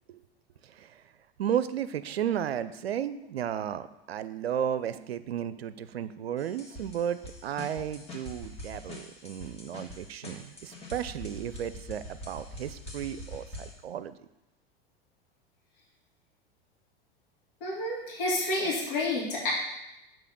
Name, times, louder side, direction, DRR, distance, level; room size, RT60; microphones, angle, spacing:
voice 1, 0.6-1.0 1.4-14.1, right 9 dB, 80° right, 13 dB, 0.5 m, -34 dB
sound 1, 6.4-13.7, left 1 dB, 20° left, 2.1 m, -44 dB
voice 2, 17.6-19.5, left 2 dB, 60° left, -6 dB, 2.8 m, -29 dB
6.8 x 4.0 x 6.2 m, 0.90 s
figure-of-eight pair, 85°, 30 cm